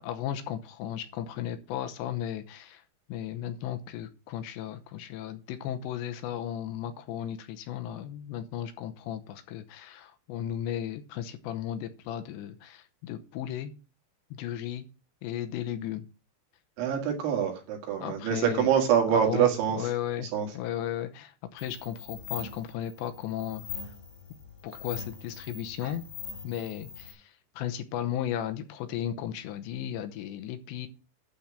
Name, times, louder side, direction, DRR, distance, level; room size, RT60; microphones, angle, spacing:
voice 1, 0.0-2.8 3.1-13.7 14.3-14.9 15.2-16.0 18.0-18.7 19.1-20.3 20.5-23.7 24.6-26.1 26.4-30.9, left 11 dB, 75° left, 8 dB, 3.0 m, -35 dB
voice 2, 16.8-19.8 20.3-20.5, right 9 dB, 80° right, 2 dB, 4.6 m, -25 dB
sound 1, 21.6-27.1, left 7 dB, 60° left, 6.0 m, -42 dB
12.0 x 4.3 x 7.5 m, 0.31 s
omnidirectional pair, 5.3 m